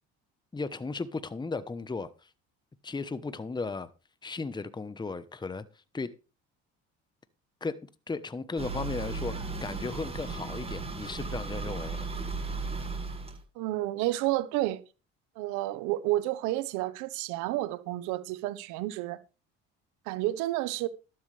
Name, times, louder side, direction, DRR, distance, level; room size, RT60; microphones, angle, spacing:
voice 1, 0.5-2.3 2.8-3.9 4.2-5.6 5.9-6.1 7.6-7.8 8.1-12.1, left 3 dB, 15° left, 1.1 m, -35 dB
sound 1, 8.6-13.4, right 3 dB, 20° right, 7.2 m, -35 dB
voice 2, 13.5-14.8 15.4-19.2 20.1-20.9, right 16 dB, 80° right, 1.3 m, -30 dB
12.5 x 11.5 x 3.4 m
supercardioid pair, 90°, 29 cm